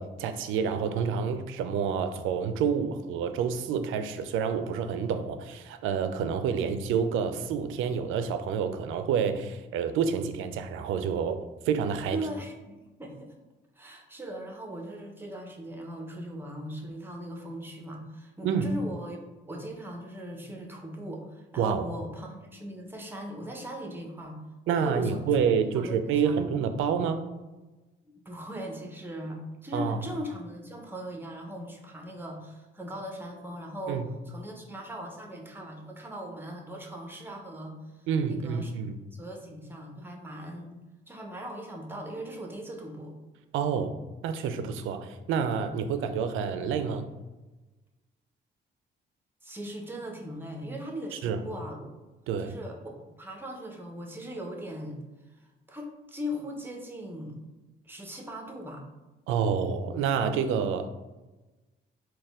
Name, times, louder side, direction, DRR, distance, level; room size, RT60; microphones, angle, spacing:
voice 1, 0.0-11.4 11.7-12.2 18.4-18.7 21.6-21.8 24.7-27.2 29.7-30.0 33.9-34.0 38.1-38.9 43.5-44.0 44.2-47.1 51.1-51.4 52.3-52.5 59.3-60.9, right 6 dB, 85° right, 9 dB, 0.4 m, -28 dB
voice 2, 12.1-13.3 13.8-19.2 19.5-25.4 25.7-26.0 26.2-26.5 28.2-37.7 38.3-38.7 39.1-40.7 41.1-43.1 49.4-51.9 52.4-55.0 55.4-57.4 57.8-58.8, equal, 10° right, 1 dB, 0.8 m, -39 dB
4.1 x 2.3 x 3.5 m, 1.1 s
cardioid pair, 90°, 20 cm